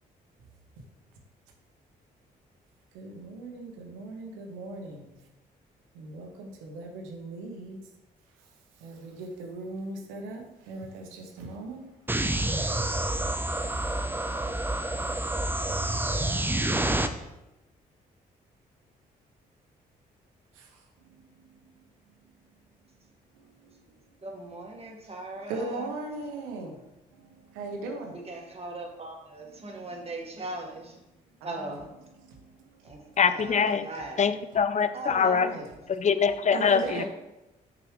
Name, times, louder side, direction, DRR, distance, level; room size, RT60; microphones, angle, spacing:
voice 1, 3.0-5.0 6.0-7.8 8.8-10.4 10.7-11.8 25.5-26.7 27.6-28.1 31.4-31.8 35.1-35.6 36.5-37.0, right 2 dB, 85° right, 3 dB, 1.0 m, -38 dB
sound 1, 12.1-17.1, right 1 dB, 10° right, 0.6 m, -28 dB
voice 2, 24.2-25.9 28.1-31.0 31.4-31.9 32.8-33.0 33.3-34.3 34.9-35.8, right 2 dB, 30° right, 0 dB, 1.6 m, -40 dB
voice 3, 33.2-33.9 34.2-35.5 35.9-37.0, left 6 dB, 35° left, 12 dB, 0.5 m, -24 dB
5.8 x 5.2 x 3.1 m, 0.95 s
hypercardioid pair, 45°, 20 cm